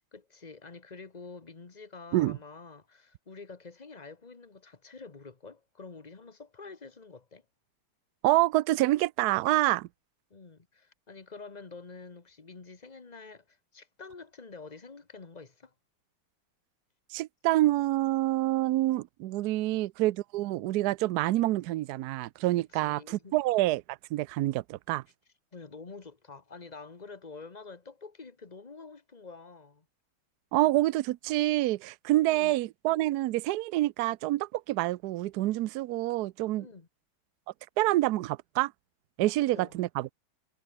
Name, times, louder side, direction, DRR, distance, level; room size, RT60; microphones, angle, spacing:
voice 1, 0.1-7.4 10.3-15.7 19.5-19.8 22.6-23.4 25.5-29.9 32.1-32.5 36.6-36.9 39.3-39.8, left 4 dB, 25° left, 1.2 m, -48 dB
voice 2, 8.2-9.9 17.1-25.0 30.5-36.7 37.8-38.7 39.2-40.1, right 16 dB, 90° right, 0.8 m, -27 dB
omnidirectional pair, 2.4 m